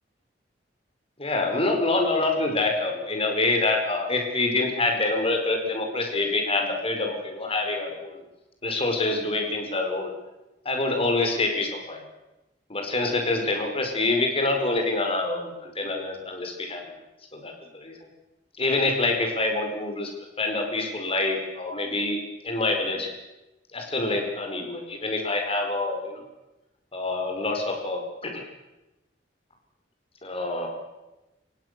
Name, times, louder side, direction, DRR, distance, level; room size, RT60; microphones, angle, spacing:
voice 1, 1.2-8.2 8.6-10.1 10.6-12.0 12.7-16.8 17.3-17.9 18.6-20.1 20.4-23.1 23.7-26.2 26.9-28.4 30.2-30.7, left 2 dB, 35° left, 3 dB, 5.1 m, -26 dB
29.5 x 17.0 x 6.9 m, 1.0 s
head